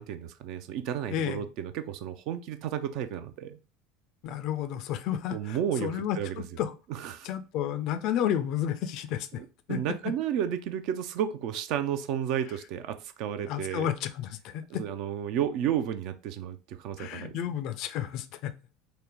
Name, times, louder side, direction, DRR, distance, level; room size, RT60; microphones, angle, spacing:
voice 1, 0.0-3.6 5.3-6.4 6.9-7.3 9.3-13.9 14.7-17.6, right 9 dB, 55° right, 0.4 m, -32 dB
voice 2, 1.1-1.4 4.2-6.7 7.2-9.3 9.7-10.1 13.4-14.8 17.0-18.5, left 10 dB, 50° left, 0.4 m, -32 dB
3.8 x 2.1 x 3.4 m
figure-of-eight pair, 70°, 0 cm